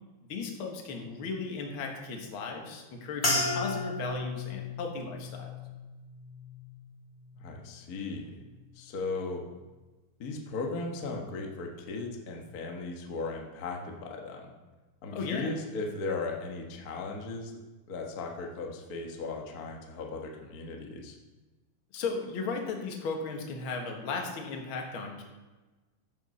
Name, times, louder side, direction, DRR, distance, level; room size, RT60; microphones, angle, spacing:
voice 1, 0.3-5.6 15.1-15.5 21.9-25.2, left 4 dB, 50° left, 2 dB, 1.7 m, -36 dB
sound 1, 3.2-7.8 8.1-8.7 9.3-9.6, left 2 dB, 25° left, 1.3 m, -35 dB
voice 2, 7.4-8.4 8.7-9.4 10.2-14.5 15.0-17.5 17.9-21.2, left 3 dB, 85° left, 1 dB, 0.8 m, -37 dB
14.0 x 6.3 x 4.3 m, 1.2 s
omnidirectional pair, 3.8 m